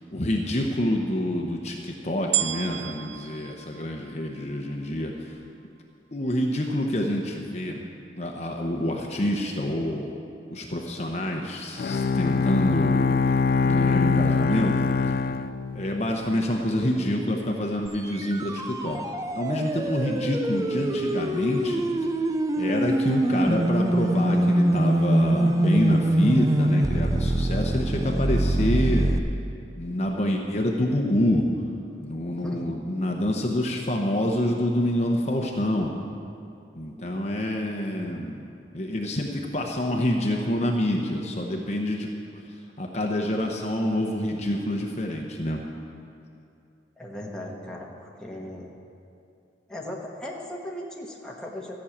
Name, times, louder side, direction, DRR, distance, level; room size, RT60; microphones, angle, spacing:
voice 1, 0.1-5.3 6.1-7.8 8.2-10.1 10.5-13.1 13.6-14.8 15.7-19.0 19.3-21.8 22.6-29.1 29.8-31.4 32.0-35.9 36.8-38.4 38.7-42.1 42.8-45.6, left 1 dB, 40° left, 1 dB, 0.9 m, -27 dB
sound 1, 2.3-4.7 5.4-5.5, right 11 dB, 80° right, 0.4 m, -31 dB
Bowed string instrument, 11.8-16.2, left 4 dB, 55° left, 0.3 m, -23 dB
sound 2, 17.9-29.2, right 1 dB, 20° right, 0.5 m, -24 dB
voice 2, 32.4-32.7 47.0-47.9 48.2-48.7 49.7-51.7, left 1 dB, 5° left, -2 dB, 1.3 m, -37 dB
14.0 x 6.4 x 8.5 m, 2.6 s
head